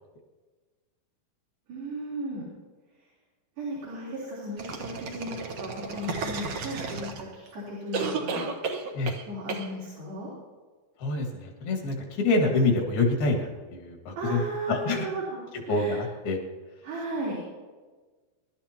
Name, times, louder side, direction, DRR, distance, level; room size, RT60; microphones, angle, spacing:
voice 1, 1.7-2.5 3.6-8.8 9.3-10.3 14.2-15.4 15.7-16.0 16.8-17.4, right 1 dB, 80° right, -7 dB, 5.7 m, -35 dB
sound 1, 4.6-7.5 7.9-9.2 9.5-9.7, right 4 dB, 60° right, 1.8 m, -33 dB
voice 2, 11.0-14.4 14.7-15.1 15.7-16.4, left 3 dB, 80° left, 2 dB, 3.9 m, -26 dB
24.5 x 12.5 x 2.9 m, 1.3 s
omnidirectional pair, 4.3 m